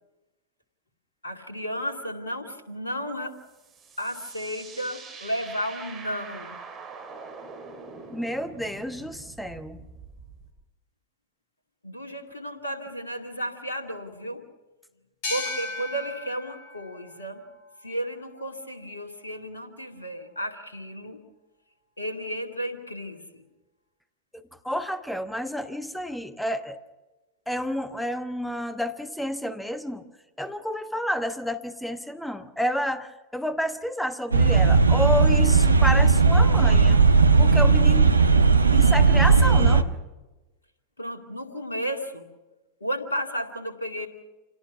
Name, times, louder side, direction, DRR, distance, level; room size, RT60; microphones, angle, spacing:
voice 1, 1.2-3.4 4.0-6.6 11.8-14.5 15.3-17.4 17.8-21.2 22.0-23.4 41.0-42.3 42.8-44.1, equal, 75° left, 4 dB, 2.4 m, -33 dB
sound 1, 3.3-10.5, right 4 dB, 25° right, 4.2 m, -44 dB
voice 2, 8.1-9.8 24.3-26.8 27.5-30.0 30.4-37.0 37.4-38.2 38.7-39.9, equal, 5° left, 11 dB, 1.2 m, -30 dB
sound 2, 15.2-18.6, left 3 dB, 50° left, 5.2 m, -37 dB
sound 3, 34.3-39.8, right 4 dB, 80° right, 1.0 m, -17 dB
27.5 x 17.5 x 5.9 m, 1.1 s
figure-of-eight pair, 90°, 0 cm